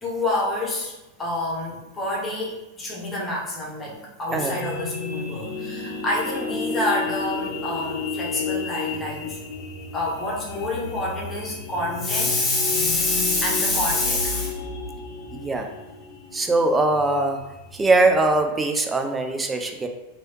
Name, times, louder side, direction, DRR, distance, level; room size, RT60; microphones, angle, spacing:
voice 1, 0.0-9.4 9.9-14.7, left 2 dB, 20° left, -4 dB, 0.9 m, -27 dB
sound 1, 4.3-18.4, left 4 dB, 50° left, 0.7 m, -32 dB
voice 2, 15.3-15.7 16.3-17.4 17.7-19.9, right 2 dB, 15° right, 4 dB, 0.4 m, -21 dB
3.0 x 2.8 x 3.0 m, 0.98 s
figure-of-eight pair, 90°, 0 cm